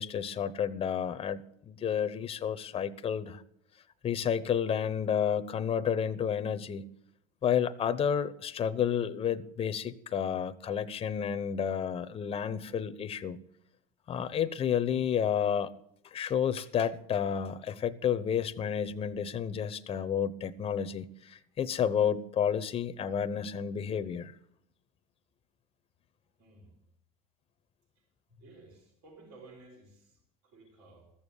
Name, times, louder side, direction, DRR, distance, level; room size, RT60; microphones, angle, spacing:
voice 1, 0.0-3.4 4.0-6.9 7.4-13.4 14.1-15.7 16.1-24.3, left 8 dB, 30° left, 0.8 m, -31 dB
voice 2, 26.4-26.8 28.0-28.1 28.3-31.1, right 2 dB, 65° right, 5.4 m, -55 dB
14.5 x 7.2 x 8.3 m
supercardioid pair, 105°, 19 cm